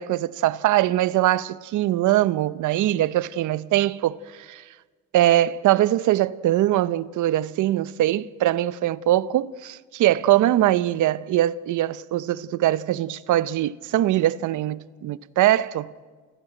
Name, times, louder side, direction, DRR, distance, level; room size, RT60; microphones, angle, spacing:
voice 1, 0.0-4.6 5.1-15.9, right 14 dB, 80° right, 0.7 m, -22 dB
27.5 x 15.5 x 9.0 m
cardioid pair, 90°, 30 cm